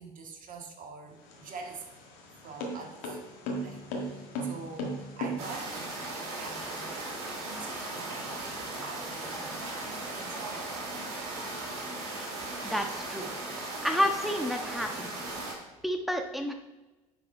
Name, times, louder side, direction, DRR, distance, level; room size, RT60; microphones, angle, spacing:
voice 1, 0.0-1.9 2.4-3.2 3.6-8.3 8.6-9.6 10.1-10.7, right 4 dB, 50° right, 3 dB, 1.7 m, -45 dB
sound 1, 1.1-5.9, equal, 70° left, 1.7 m, -37 dB
sound 2, 5.4-15.5, right 2 dB, 75° right, 2.3 m, -37 dB
voice 2, 12.6-13.3 13.8-15.1 15.8-16.5, equal, ahead, 4 dB, 1.3 m, -30 dB
9.7 x 4.9 x 4.4 m, 1.1 s
hypercardioid pair, 60°, 18 cm